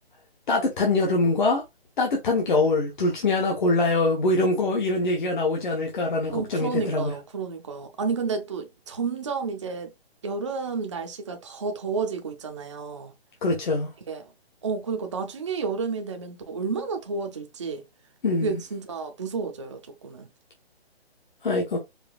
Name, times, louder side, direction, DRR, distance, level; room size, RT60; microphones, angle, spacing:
voice 1, 0.5-1.6 2.0-7.1 13.4-13.9 18.2-18.6 21.4-21.8, left 2 dB, 50° left, 1.1 m, -23 dB
voice 2, 6.3-9.9 10.2-13.1 14.1-14.2 14.6-17.8 18.4-20.3, right 5 dB, 30° right, 0.4 m, -31 dB
4.8 x 2.8 x 2.3 m
hypercardioid pair, 160°, 32 cm